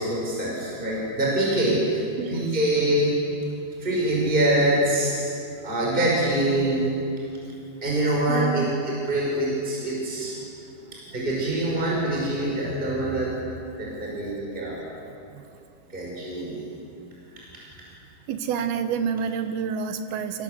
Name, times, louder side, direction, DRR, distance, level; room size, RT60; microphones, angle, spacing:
voice 1, 0.0-2.0 2.3-3.2 3.8-5.3 5.6-6.9 7.8-10.4 11.1-13.4 13.8-14.8 15.9-16.7, right 1 dB, 10° right, -4 dB, 5.4 m, -24 dB
voice 2, 2.2-2.5 8.3-8.7 10.4-10.5 11.1-11.2 15.3-15.4 18.3-20.4, right 6 dB, 80° right, 8 dB, 3.1 m, -29 dB
26.5 x 20.0 x 8.0 m, 2.7 s
omnidirectional pair, 4.4 m